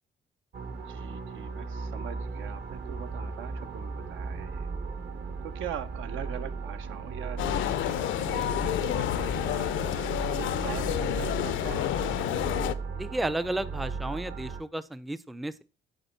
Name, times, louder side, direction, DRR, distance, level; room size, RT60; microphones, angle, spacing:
sound 1, 0.5-14.6, right 4 dB, 60° right, 0.9 m, -37 dB
voice 1, 0.7-4.7 5.4-9.9 10.4-12.1, right 9 dB, 80° right, 11 dB, 0.6 m, -42 dB
sound 2, 7.4-12.7, left 12 dB, 75° left, 0.4 m, -29 dB
voice 2, 13.0-15.6, right 1 dB, ahead, 15 dB, 0.3 m, -33 dB
8.1 x 4.2 x 4.3 m, 0.35 s
cardioid pair, 90°, 20 cm